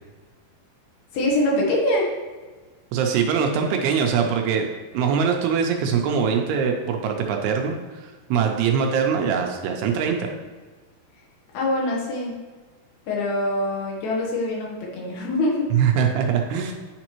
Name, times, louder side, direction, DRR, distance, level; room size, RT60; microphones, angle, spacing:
voice 1, 1.1-2.1 11.5-12.3 13.1-15.7, left 1 dB, 70° left, -3 dB, 2.9 m, -24 dB
voice 2, 2.9-4.7 4.9-10.3 15.7-16.7, right 7 dB, 80° right, 2 dB, 2.6 m, -22 dB
9.5 x 5.1 x 3.0 m, 1.3 s
omnidirectional pair, 4.9 m